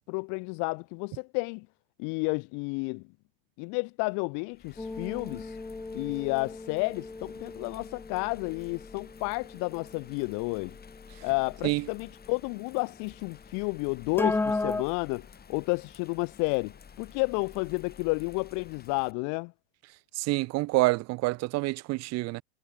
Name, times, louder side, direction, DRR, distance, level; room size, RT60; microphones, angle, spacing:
voice 1, 0.1-1.7 2.0-3.0 3.6-5.5 5.9-10.8 11.2-19.5, left 33 dB, 55° left, 0.6 m, -31 dB
Bird vocalization bird call bird song / Rain, 4.5-19.1, left 6 dB, 25° left, 3.3 m, -51 dB
sound 1, 4.8-11.0 14.2-14.8, left 3 dB, 5° left, 0.5 m, -35 dB
voice 2, 20.2-22.4, right 21 dB, 45° right, 0.6 m, -27 dB
hypercardioid pair, 90°, 36 cm